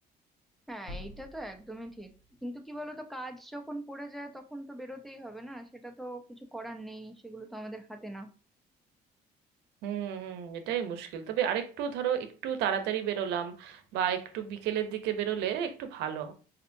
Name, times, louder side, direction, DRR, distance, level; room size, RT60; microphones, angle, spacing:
voice 1, 0.7-2.1 2.4-8.3, right 1 dB, ahead, 4 dB, 0.5 m, -41 dB
sound 1, 0.9-2.9, left 1 dB, 85° left, 1.1 m, -47 dB
voice 2, 9.8-16.3, right 9 dB, 85° right, 8 dB, 0.6 m, -32 dB
5.3 x 2.7 x 2.6 m, 0.37 s
cardioid pair, 110°, 17 cm